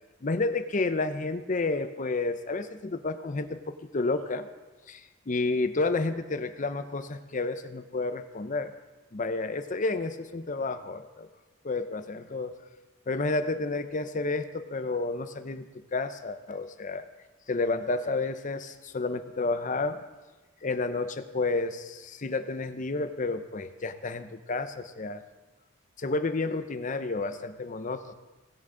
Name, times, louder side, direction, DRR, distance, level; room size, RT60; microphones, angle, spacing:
voice 1, 0.2-4.5 4.9-8.7 9.1-11.3 11.6-12.5 13.1-17.1 17.5-20.0 20.6-25.2 26.0-28.1, left 3 dB, 40° left, 11 dB, 0.6 m, -31 dB
17.5 x 7.4 x 3.8 m, 1.2 s
head